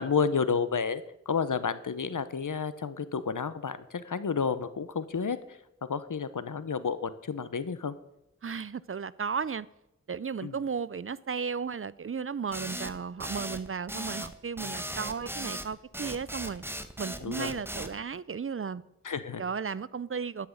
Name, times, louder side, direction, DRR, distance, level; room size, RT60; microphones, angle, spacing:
voice 1, 0.0-7.9 10.4-10.6 17.2-17.6 19.0-19.4, left 5 dB, 85° left, 0.8 m, -31 dB
voice 2, 8.4-9.7 10.1-16.6 17.0-18.8 19.4-20.5, right 6 dB, 45° right, 0.5 m, -34 dB
sound 1, 12.5-17.9, right 1 dB, 5° right, 1.0 m, -37 dB
11.5 x 6.1 x 8.6 m
wide cardioid pair, 55°, 30 cm